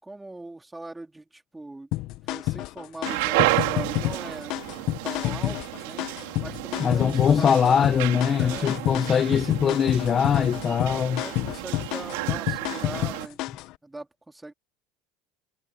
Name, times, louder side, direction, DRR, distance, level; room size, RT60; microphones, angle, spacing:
voice 1, 0.0-1.9 2.2-4.6 5.0-6.1 6.4-7.9 8.3-8.7 11.0-13.4 13.8-14.5, right 2 dB, 10° right, 4.2 m, -40 dB
sound 1, 1.9-13.7, left 17 dB, 60° left, 1.3 m, -29 dB
sound 2, 3.0-13.3, right 22 dB, 85° right, 3.2 m, -31 dB
voice 2, 6.8-11.2, left 7 dB, 30° left, 1.3 m, -22 dB
supercardioid pair, 120°, 0 cm